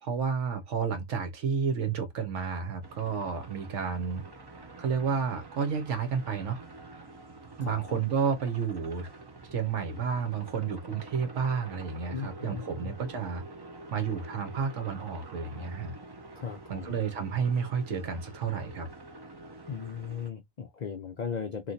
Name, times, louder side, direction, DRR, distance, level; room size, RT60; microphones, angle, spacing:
voice 1, 0.0-4.2 4.8-6.6 7.6-9.1 9.5-13.4 13.9-16.0 16.7-18.9, right 6 dB, 65° right, 1.1 m, -31 dB
sound 1, 2.8-20.3, right 2 dB, 40° right, 0.3 m, -47 dB
voice 2, 7.6-7.9 12.1-12.9 16.4-17.0 19.7-21.7, left 6 dB, 75° left, 0.4 m, -37 dB
3.1 x 2.5 x 2.5 m
omnidirectional pair, 1.4 m